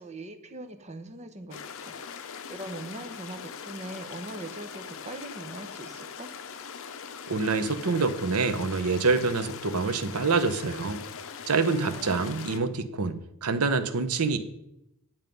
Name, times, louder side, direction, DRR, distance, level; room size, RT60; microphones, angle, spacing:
voice 1, 0.0-6.3 11.6-12.4, right 2 dB, 30° right, 8 dB, 1.0 m, -42 dB
sound 1, 1.5-12.6, left 6 dB, 65° left, 0.7 m, -41 dB
voice 2, 7.3-11.0 11.5-14.4, right 4 dB, 75° right, 9 dB, 0.9 m, -26 dB
9.4 x 7.4 x 5.3 m, 0.83 s
head